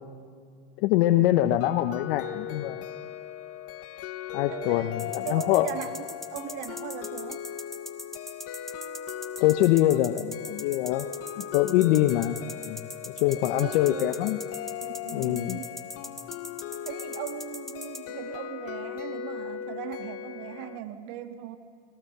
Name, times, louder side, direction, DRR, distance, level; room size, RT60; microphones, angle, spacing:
voice 1, 0.8-2.8 4.3-5.7 9.4-11.1 11.4-12.4 12.7-12.8 13.1-14.4 15.1-15.6, left 14 dB, 75° left, 8 dB, 0.9 m, -24 dB
sound 1, 1.6-20.8, left 10 dB, 50° left, 1.0 m, -38 dB
voice 2, 4.5-7.4 13.5-14.2 14.8-15.7 16.8-21.6, right 12 dB, 70° right, 8 dB, 1.6 m, -39 dB
sound 2, 5.0-18.0, left 1 dB, ahead, 1.9 m, -40 dB
23.0 x 19.5 x 6.7 m, 2.1 s
hypercardioid pair, 85°, 30 cm